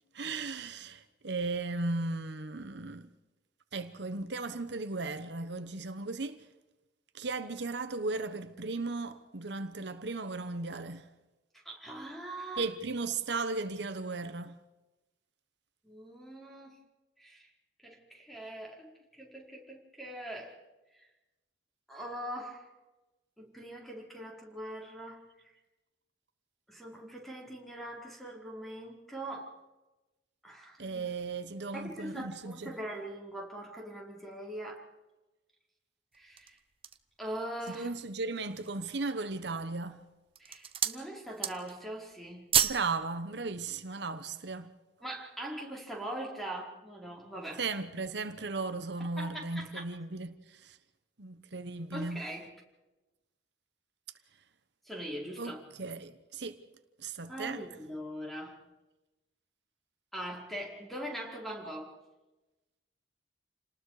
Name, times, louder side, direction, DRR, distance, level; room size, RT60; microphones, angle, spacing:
voice 1, 0.1-3.1 3.7-6.4 7.1-11.1 12.6-14.6 30.8-32.8 37.7-40.0 42.6-44.7 47.6-50.8 51.2-52.2 55.4-56.6 57.0-57.6, right 3 dB, 70° right, 1.1 m, -36 dB
voice 2, 11.5-12.7 15.8-16.7 17.2-17.5 17.8-18.9 19.2-20.6 21.0-21.1 21.9-22.7 23.4-25.2 26.7-29.5 30.4-31.1 31.7-34.8 36.1-36.6 37.2-37.9 40.4-42.5 45.0-47.6 49.2-49.9 51.9-52.5 54.9-55.6 57.3-58.6 60.1-61.9, right 1 dB, ahead, 4.6 m, -42 dB
sound 1, 36.1-37.1 37.7-37.8 38.3-38.9 39.6-39.9 40.3-41.0 41.3-41.8 42.1-42.9 43.2-43.4, right 8 dB, 30° right, 1.1 m, -31 dB
29.0 x 19.5 x 4.9 m
head